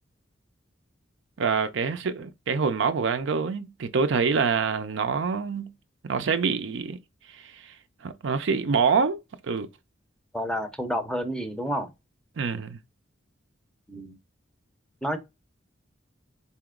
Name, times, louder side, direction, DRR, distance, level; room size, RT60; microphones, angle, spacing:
voice 1, 1.4-5.7 6.0-7.0 7.3-7.7 8.0-9.2 9.5-9.7 12.4-12.8, right 5 dB, 65° right, 0.5 m, -26 dB
voice 2, 10.3-11.9 13.9-14.2 15.0-15.2, equal, 5° left, 0.6 m, -29 dB
4.2 x 2.9 x 3.6 m
head